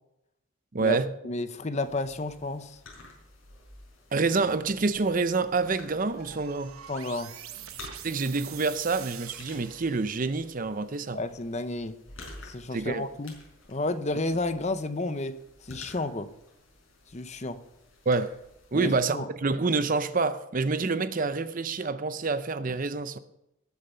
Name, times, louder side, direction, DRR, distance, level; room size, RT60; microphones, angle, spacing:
voice 1, 0.7-1.1 4.1-6.8 8.0-11.2 12.7-13.1 18.1-18.3 18.7-23.2, right 4 dB, 40° right, 0.6 m, -27 dB
voice 2, 1.2-2.8 6.9-7.4 11.1-12.0 12.4-13.3 13.7-16.3 17.1-17.6 18.7-19.3, left 2 dB, 30° left, 0.7 m, -31 dB
sound 1, 1.8-19.0, left 2 dB, 65° left, 5.4 m, -51 dB
sound 2, 6.2-10.5, right 10 dB, 80° right, 1.0 m, -44 dB
19.5 x 7.1 x 5.5 m
head